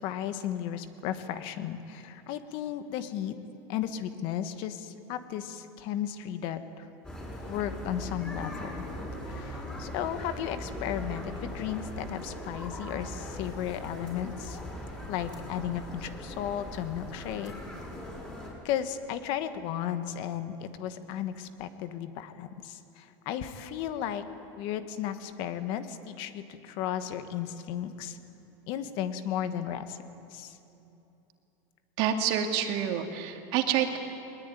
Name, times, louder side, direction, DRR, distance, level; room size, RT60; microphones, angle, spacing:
voice 1, 0.0-3.4 3.7-6.9 7.5-8.8 9.3-14.6 15.1-17.5 18.6-24.2 24.5-28.2 28.7-30.0 30.3-30.6, left 10 dB, 55° left, 10 dB, 1.4 m, -34 dB
sound 1, 7.0-18.5, left 1 dB, 10° left, 5.6 m, -40 dB
voice 2, 32.0-34.0, right 9 dB, 55° right, 5 dB, 2.3 m, -28 dB
20.5 x 20.5 x 9.3 m, 2.9 s
supercardioid pair, 150°, 10 cm